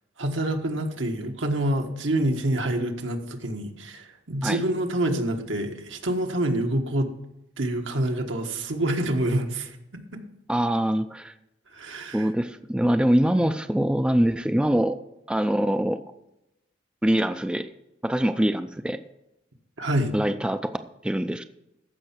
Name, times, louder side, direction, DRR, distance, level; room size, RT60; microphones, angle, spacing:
voice 1, 0.2-7.1 7.6-9.8 10.1-10.2 11.7-12.3 19.8-20.1, right 1 dB, 80° right, 4 dB, 1.5 m, -27 dB
voice 2, 10.5-11.3 12.1-15.0 15.3-16.0 17.0-17.7 18.0-19.0 20.1-20.7 21.0-21.4, right 1 dB, 5° right, 9 dB, 0.4 m, -23 dB
14.5 x 5.6 x 5.9 m, 0.89 s
head